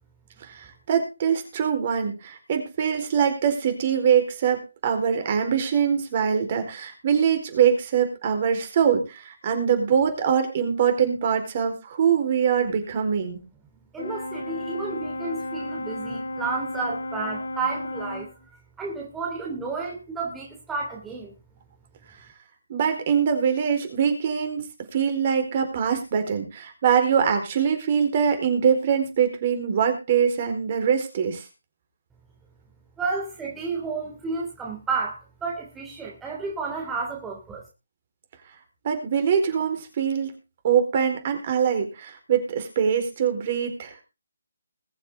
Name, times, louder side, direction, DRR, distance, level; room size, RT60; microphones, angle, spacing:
voice 1, 0.4-13.4 22.7-24.6 24.9-31.4 38.8-40.3 40.6-44.0, right 7 dB, 40° right, 6 dB, 4.3 m, -23 dB
voice 2, 13.9-18.3 18.8-21.3 33.0-37.6, right 4 dB, 10° right, -2 dB, 3.0 m, -31 dB
Brass instrument, 14.0-18.4, left 1 dB, 70° left, 3.5 m, -33 dB
21.5 x 7.3 x 3.7 m, 0.29 s
figure-of-eight pair, 150°, 0 cm